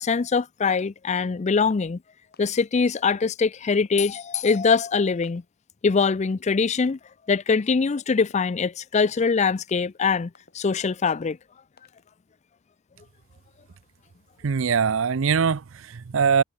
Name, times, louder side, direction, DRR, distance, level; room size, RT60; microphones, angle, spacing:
voice 1, 0.0-2.0 2.4-5.4 5.8-7.0 7.3-11.4, left 5 dB, 35° left, 0.4 m, -23 dB
sound 1, 1.6-2.0 2.3-2.6 3.0-3.3 3.7-4.0 4.4-4.8 5.2-5.5 6.0-6.3 6.7-7.1 7.5-7.8 8.2-8.5 9.0-9.3 9.7-10.0 10.3-10.7 11.1-11.4 11.8-12.1, left 3 dB, 50° left, 6.1 m, -55 dB
voice 2, 14.4-16.4, right 6 dB, 75° right, 0.6 m, -22 dB
head